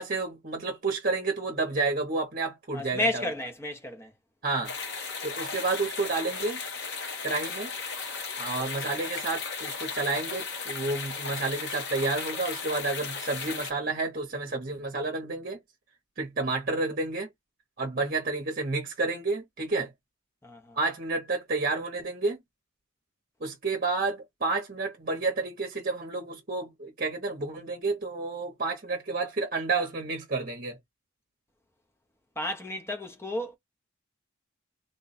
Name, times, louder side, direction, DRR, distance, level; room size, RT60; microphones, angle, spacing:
voice 1, 0.0-3.2 4.4-4.7 5.2-6.6 7.2-7.7 8.4-15.6 16.2-17.3 17.8-19.9 20.7-22.4 23.4-30.8, right 3 dB, 45° right, 0.8 m, -30 dB
voice 2, 2.7-4.1 8.6-8.7 20.4-20.8 32.4-33.6, left 1 dB, 10° left, 0.7 m, -32 dB
sound 1, 4.6-13.7, left 5 dB, 55° left, 1.2 m, -36 dB
3.4 x 2.2 x 4.0 m
head